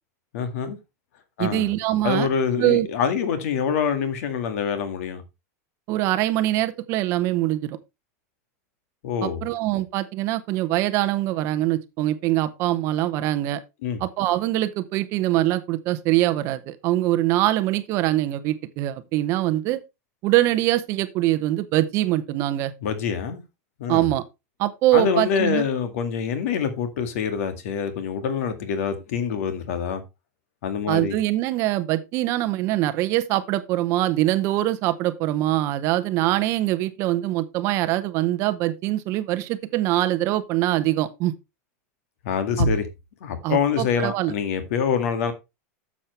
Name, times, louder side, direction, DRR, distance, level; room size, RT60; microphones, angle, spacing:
voice 1, 0.3-0.8 1.4-1.7 2.0-5.2 9.0-9.4 13.8-14.0 22.8-23.4 23.8-24.1 24.9-30.0 30.6-31.2 42.2-42.8 43.2-45.3, left 6 dB, 65° left, 2.0 m, -25 dB
voice 2, 1.4-2.3 2.6-2.9 5.9-7.8 9.2-13.6 14.0-19.8 20.2-22.7 23.9-24.2 24.6-25.6 30.9-41.3 42.6-42.7 43.4-44.3, right 15 dB, 35° right, 0.7 m, -23 dB
10.0 x 7.3 x 3.2 m
supercardioid pair, 170°, 8 cm